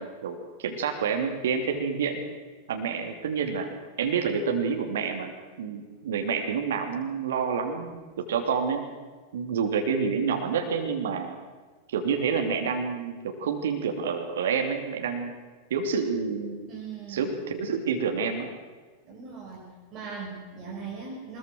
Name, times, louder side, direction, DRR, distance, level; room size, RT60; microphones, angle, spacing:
voice 1, 0.0-2.2 2.7-5.3 5.6-7.9 8.2-8.8 9.3-11.3 11.9-15.3 15.7-16.6 17.1-18.5, right 6 dB, 60° right, 4 dB, 2.9 m, -28 dB
voice 2, 16.7-17.5 19.0-21.4, right 5 dB, 35° right, -3 dB, 6.4 m, -40 dB
22.0 x 21.5 x 6.4 m, 1.4 s
figure-of-eight pair, 90°, 0 cm